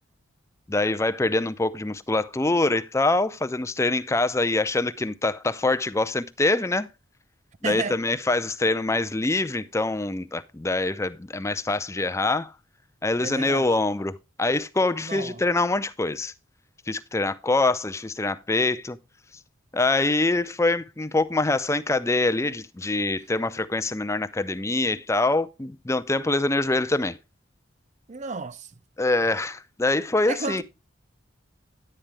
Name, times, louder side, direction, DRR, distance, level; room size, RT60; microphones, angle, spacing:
voice 1, 0.7-6.9 7.6-12.5 13.0-14.1 14.4-16.3 16.9-19.0 19.7-27.2 29.0-30.6, left 2 dB, 15° left, 0.5 m, -24 dB
voice 2, 7.6-8.0 13.2-13.7 15.0-15.4 28.1-28.7 30.3-30.6, right 4 dB, 35° right, 0.5 m, -32 dB
11.0 x 8.8 x 3.3 m
head